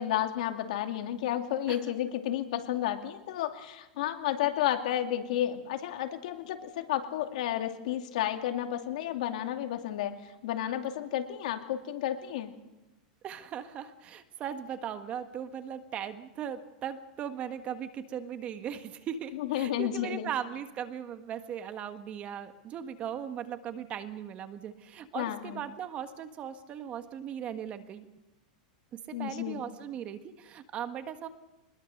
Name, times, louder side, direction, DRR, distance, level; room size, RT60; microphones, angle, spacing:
voice 1, 0.0-10.1 10.4-12.5 19.3-20.3 25.1-25.6 29.1-29.6, left 12 dB, 70° left, 5 dB, 2.6 m, -32 dB
voice 2, 13.2-28.1 28.9-31.3, right 9 dB, 30° right, 9 dB, 1.6 m, -38 dB
23.5 x 21.0 x 6.6 m, 1.0 s
supercardioid pair, 145°, 4 cm